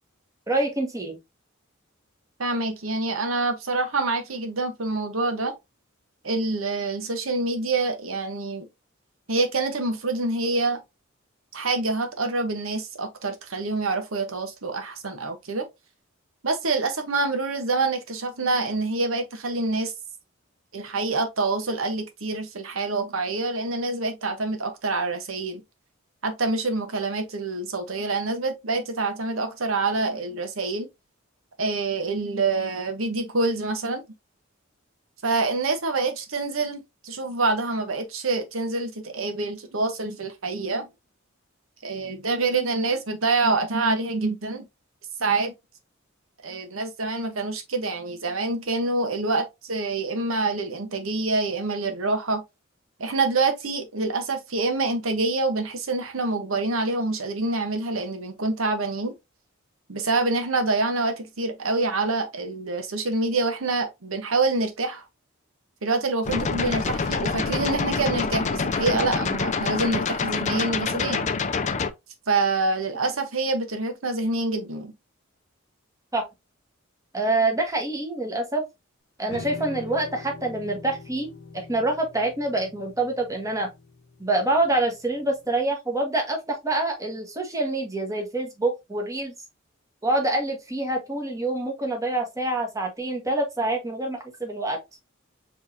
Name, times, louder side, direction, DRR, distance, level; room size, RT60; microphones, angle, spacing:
voice 1, 0.5-1.2 76.1-76.2 77.1-78.6 79.2-83.7 84.2-89.3 90.0-94.8, right 2 dB, 15° right, 1.3 m, -26 dB
voice 2, 2.4-5.5 6.2-8.7 9.3-10.8 11.5-15.6 16.4-19.9 20.7-25.6 26.2-30.9 31.6-34.0 35.2-40.9 41.8-44.6 45.2-45.5 46.4-52.4 53.0-59.1 59.9-65.0 65.8-71.3 72.3-74.9, right 3 dB, 80° right, 1.1 m, -26 dB
sound 1, 66.2-71.9, left 4 dB, 35° left, 0.5 m, -26 dB
sound 2, 79.3-85.5, left 3 dB, 55° left, 0.9 m, -43 dB
5.3 x 3.2 x 2.7 m
head